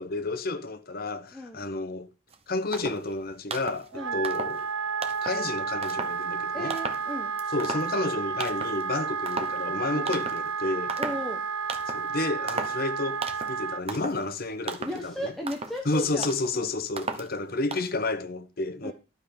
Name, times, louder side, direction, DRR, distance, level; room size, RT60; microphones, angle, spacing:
voice 1, 0.0-2.1 2.5-4.7 5.2-6.7 7.5-11.0 11.9-13.2 13.5-15.3 15.9-18.9, left 2 dB, 45° left, 0.9 m, -31 dB
voice 2, 1.3-1.6 3.9-4.2 6.5-7.3 9.9-10.2 11.0-11.4 14.8-16.3 16.5-16.7 18.8-18.9, equal, ahead, 1.1 m, -35 dB
sound 1, 2.3-2.4 2.7-3.1 3.5-3.9 4.2-4.7 5.0-5.4 5.8-6.2 6.7-7.1 7.4-8.1 8.4-8.8 9.2-9.6 10.1-10.5 10.9-11.3 11.7-12.1 12.5-12.8 13.2-13.6 13.9-14.2 14.7-15.1 15.4-15.8 16.2-16.5 17.0-17.3 17.7-17.9, right 4 dB, 30° right, 1.0 m, -36 dB
Wind instrument woodwind instrument, 3.9-13.8, right 5 dB, 80° right, 0.6 m, -31 dB
12.0 x 5.3 x 6.0 m
head